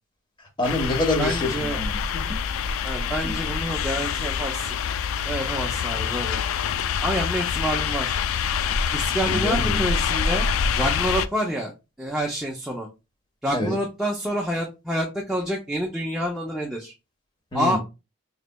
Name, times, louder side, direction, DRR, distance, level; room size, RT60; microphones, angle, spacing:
sound 1, 0.6-11.3, left 7 dB, 70° left, 0.3 m, -26 dB
voice 1, 0.6-2.4 9.2-9.8 13.5-13.8 17.5-17.8, left 1 dB, 20° left, 1.0 m, -26 dB
voice 2, 1.2-1.8 2.8-4.8 5.2-6.4 7.0-8.2 8.9-10.5 10.8-11.7 12.0-12.9 13.4-16.9 17.5-17.8, equal, ahead, 0.5 m, -27 dB
5.0 x 3.2 x 2.2 m
head